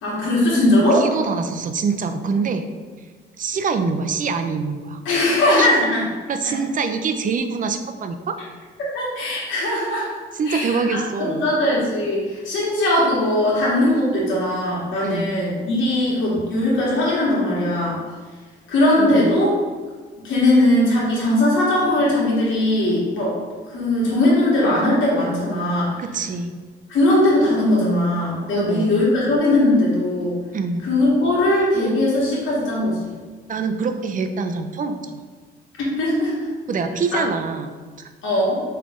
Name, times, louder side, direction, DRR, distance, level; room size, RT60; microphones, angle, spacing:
voice 1, 0.0-1.0 5.0-6.1 6.4-6.6 8.9-10.1 10.4-18.0 18.7-19.5 20.2-23.3 23.7-26.0 26.9-30.4 30.8-33.1 36.0-36.3 37.1-37.2 38.2-38.6, left 1 dB, 80° left, -6 dB, 1.5 m, -19 dB
voice 2, 0.9-2.7 3.4-5.0 5.6-5.7 6.3-8.4 10.3-11.5 15.0-15.3 19.0-19.3 26.0-26.5 28.5-29.0 30.5-30.9 33.5-35.2 36.7-38.1, right 4 dB, 40° right, 7 dB, 0.4 m, -25 dB
3.8 x 3.3 x 3.5 m, 1.4 s
cardioid pair, 90°, 20 cm